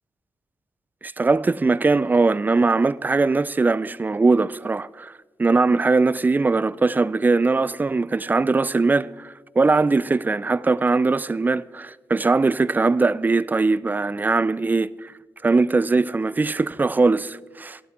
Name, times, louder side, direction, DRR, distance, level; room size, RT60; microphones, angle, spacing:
voice 1, 1.0-5.1 5.4-15.1 15.4-17.8, right 3 dB, 25° right, 0.3 m, -21 dB
12.0 x 12.0 x 3.6 m
cardioid pair, 70°, 8 cm